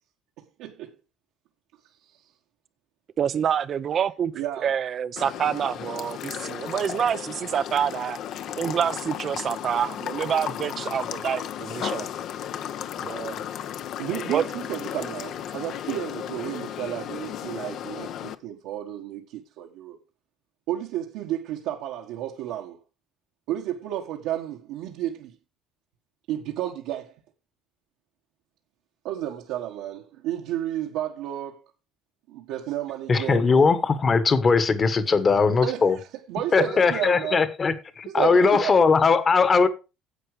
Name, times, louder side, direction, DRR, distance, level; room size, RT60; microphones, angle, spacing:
voice 1, 0.6-0.9 4.3-4.8 14.0-20.0 20.7-22.8 23.5-25.3 26.3-27.1 29.0-31.6 32.3-33.5 35.6-35.8 36.3-37.5 38.0-38.8, right 12 dB, 80° right, 1.5 m, -32 dB
voice 2, 3.2-8.2 8.6-12.1 13.0-13.4 14.3-14.4, right 8 dB, 40° right, 0.5 m, -27 dB
sound 1, 5.2-18.3, left 10 dB, 55° left, 0.9 m, -34 dB
voice 3, 33.1-36.0 36.5-39.7, left 4 dB, 25° left, 1.4 m, -20 dB
10.0 x 7.9 x 5.0 m
cardioid pair, 140°, 0 cm